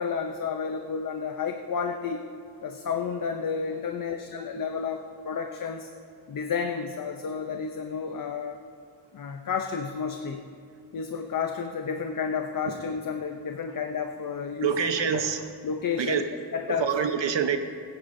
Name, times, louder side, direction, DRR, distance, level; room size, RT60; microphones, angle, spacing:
voice 1, 0.0-2.2 2.6-5.9 6.3-8.6 9.1-10.4 10.9-15.2 15.6-16.3 16.5-16.9, left 6 dB, 50° left, 5 dB, 0.6 m, -31 dB
voice 2, 14.6-15.4 16.0-16.2 16.8-17.6, right 7 dB, 85° right, 7 dB, 1.0 m, -25 dB
21.0 x 10.0 x 2.6 m, 2.2 s
wide cardioid pair, 140°, 43 cm